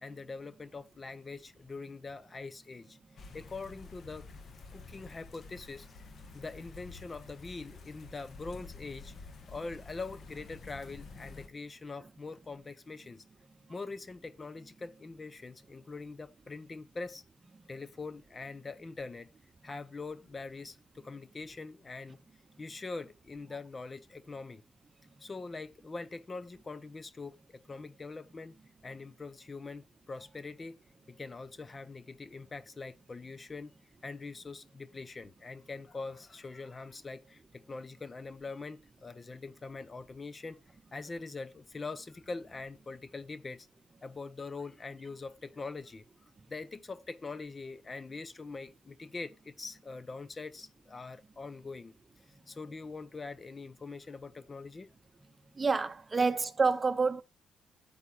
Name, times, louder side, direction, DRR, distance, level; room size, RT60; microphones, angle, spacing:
voice 1, 0.0-3.0 3.3-4.3 4.7-6.1 6.3-9.1 9.5-13.2 13.7-17.2 17.7-19.3 19.6-22.2 22.6-24.6 25.2-28.5 28.8-30.8 31.1-33.7 34.0-40.6 40.9-43.7 44.0-46.0 46.5-51.9 52.5-54.9 56.1-56.3, left 3 dB, 30° left, 0.7 m, -43 dB
sound 1, 3.2-11.5, left 4 dB, 50° left, 1.5 m, -50 dB
voice 2, 55.5-57.2, right 4 dB, 25° right, 1.0 m, -28 dB
13.0 x 8.4 x 3.0 m
cardioid pair, 90°, 0 cm